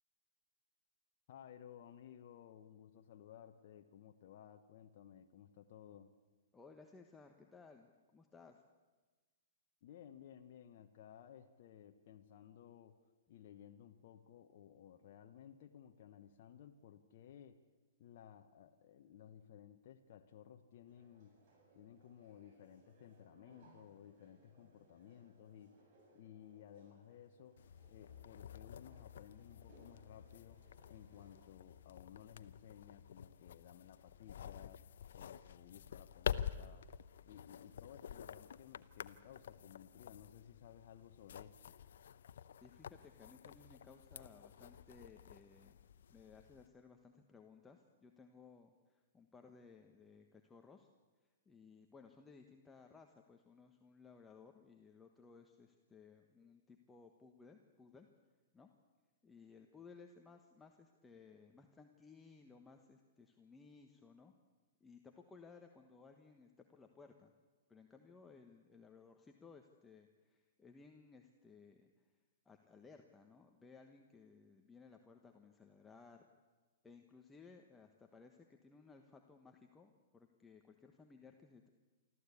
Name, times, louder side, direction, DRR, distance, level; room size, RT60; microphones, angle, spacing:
voice 1, 1.3-6.1 9.8-13.0 13.3-17.6 18.0-21.4 21.7-25.8 26.1-27.6 27.9-36.9 37.2-41.8, left 9 dB, 55° left, 4 dB, 1.1 m, -57 dB
voice 2, 6.5-8.6 42.6-45.8 46.1-50.9 51.4-58.1 58.5-58.7 59.2-64.3 64.8-67.3 67.7-72.1 72.4-76.3 76.8-81.7, left 4 dB, 10° left, 3 dB, 1.3 m, -60 dB
sound 1, 20.8-31.5, right 1 dB, 50° right, 7.5 m, -69 dB
sound 2, 27.6-46.7, left 9 dB, 75° left, 0.8 m, -49 dB
24.5 x 14.0 x 8.4 m, 1.3 s
hypercardioid pair, 135°, 0 cm